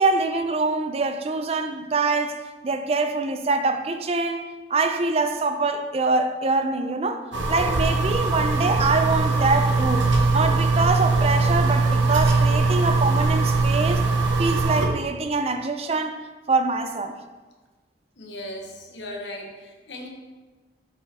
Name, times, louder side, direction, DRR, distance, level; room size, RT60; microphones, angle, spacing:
voice 1, 0.0-14.1 14.4-17.1, right 3 dB, 35° right, 0.4 m, -24 dB
sound 1, 7.3-14.9, right 3 dB, 90° right, 0.9 m, -21 dB
voice 2, 18.2-20.1, left 1 dB, 75° left, 1.1 m, -37 dB
8.0 x 4.8 x 3.4 m
head